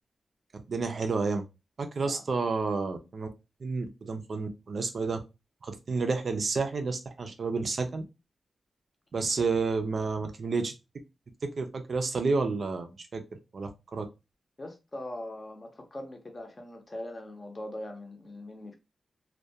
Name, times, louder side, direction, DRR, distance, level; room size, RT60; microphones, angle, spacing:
voice 1, 0.7-1.4 1.8-3.3 3.6-5.2 5.6-8.0 9.1-10.7 11.4-13.2 13.5-14.0, right 4 dB, 55° right, 0.4 m, -30 dB
voice 2, 14.6-18.8, left 1 dB, 30° left, 0.6 m, -41 dB
2.2 x 2.2 x 2.6 m
wide cardioid pair, 120°, 0 cm